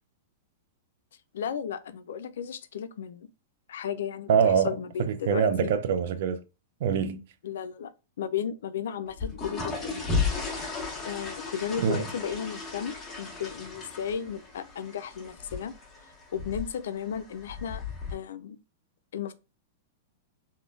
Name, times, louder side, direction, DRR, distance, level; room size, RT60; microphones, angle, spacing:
voice 1, 1.3-3.3 3.7-5.7 7.4-7.9 8.2-10.2 11.0-15.8 16.3-17.8 18.1-18.6 19.1-19.3, left 8 dB, 80° left, 0.3 m, -34 dB
voice 2, 4.3-6.4 6.8-7.2 11.8-12.1, right 7 dB, 55° right, 0.4 m, -25 dB
sound 1, 9.1-18.1, left 4 dB, 10° left, 1.2 m, -35 dB
3.7 x 2.1 x 2.3 m
supercardioid pair, 160°, 0 cm